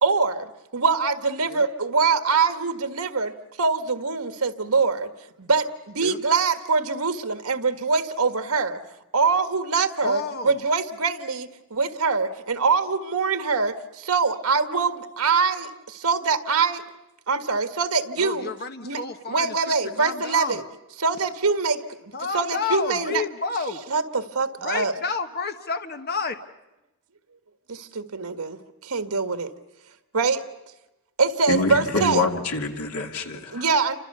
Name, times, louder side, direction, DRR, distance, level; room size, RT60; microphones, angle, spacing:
voice 1, 0.0-5.1 5.4-5.7 6.0-8.8 9.1-13.8 14.1-16.8 17.3-18.5 18.8-19.0 19.3-20.6 21.0-23.2 23.9-24.9 27.7-29.5 30.1-30.4 31.2-32.3 33.5-34.0, right 4 dB, 85° right, 1.7 m, -24 dB
voice 2, 10.0-10.5 18.2-20.6 22.1-23.8 24.6-26.3, left 4 dB, 45° left, 1.3 m, -30 dB
voice 3, 31.5-33.6, left 3 dB, 80° left, 2.6 m, -26 dB
29.5 x 26.0 x 6.9 m
head